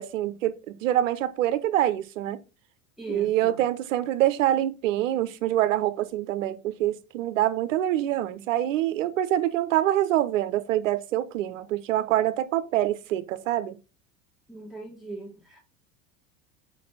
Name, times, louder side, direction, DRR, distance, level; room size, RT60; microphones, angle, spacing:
voice 1, 0.0-2.4 3.1-13.7, right 13 dB, 80° right, 1.0 m, -25 dB
voice 2, 3.0-3.6 14.5-15.6, right 3 dB, ahead, 1.8 m, -38 dB
5.8 x 4.2 x 5.7 m
hypercardioid pair, 95°, 38 cm